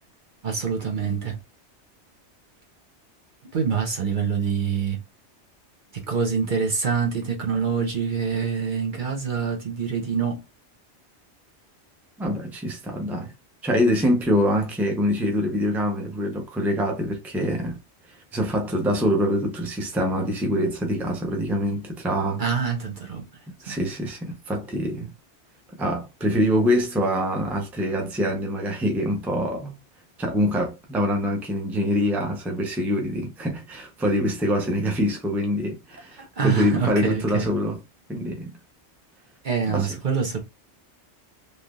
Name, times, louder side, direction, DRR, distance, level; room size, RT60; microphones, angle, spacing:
voice 1, 0.4-1.4 3.5-5.0 5.9-10.4 22.4-23.2 23.7-23.8 36.4-37.5 39.4-40.4, right 6 dB, 50° right, 0.9 m, -25 dB
voice 2, 12.2-13.3 13.6-17.8 18.3-22.4 23.6-25.1 25.8-29.8 30.2-37.8 38.1-38.5 39.7-40.0, equal, ahead, 0.6 m, -25 dB
3.4 x 2.7 x 2.3 m
omnidirectional pair, 1.2 m